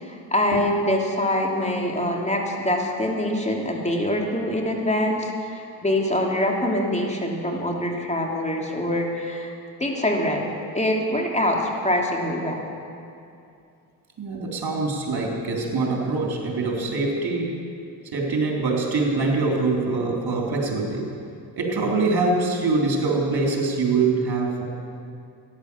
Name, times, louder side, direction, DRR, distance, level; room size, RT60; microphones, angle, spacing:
voice 1, 0.0-9.5 9.8-12.6, left 1 dB, 15° left, 0 dB, 2.9 m, -24 dB
voice 2, 14.2-17.6 18.1-21.1 21.6-24.6, right 3 dB, 50° right, 0 dB, 3.7 m, -24 dB
14.5 x 10.5 x 7.0 m, 2.5 s
hypercardioid pair, 45°, 47 cm